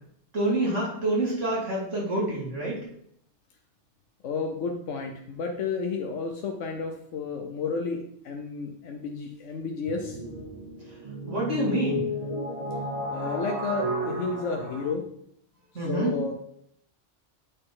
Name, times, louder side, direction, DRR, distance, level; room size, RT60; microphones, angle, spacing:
voice 1, 0.3-2.8 11.3-12.0 15.7-16.1, right 1 dB, 80° right, -5 dB, 3.0 m, -27 dB
voice 2, 4.2-10.2 13.1-15.0 15.8-16.3, left 4 dB, 85° left, 3 dB, 1.1 m, -32 dB
sound 1, 9.9-14.9, equal, 35° right, 0.8 m, -33 dB
8.6 x 4.2 x 3.8 m, 0.70 s
omnidirectional pair, 1.2 m